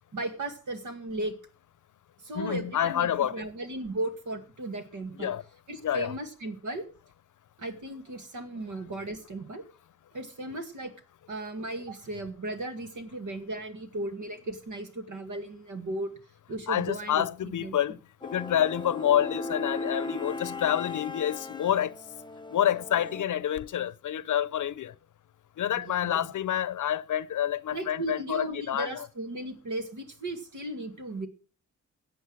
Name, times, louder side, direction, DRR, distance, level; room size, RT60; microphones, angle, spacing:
voice 1, 0.1-1.3 2.2-5.3 5.7-6.9 7.6-9.6 10.1-10.9 11.3-16.1 16.5-17.8 25.8-26.2 27.7-31.3, right 2 dB, 75° right, 2.2 m, -36 dB
voice 2, 2.3-3.4 5.2-5.4 5.8-6.1 16.7-21.9 22.5-24.9 25.6-29.1, left 10 dB, 75° left, 0.7 m, -28 dB
sound 1, 18.2-23.2, left 2 dB, 15° left, 0.7 m, -37 dB
13.5 x 8.2 x 6.3 m
cardioid pair, 60°, 31 cm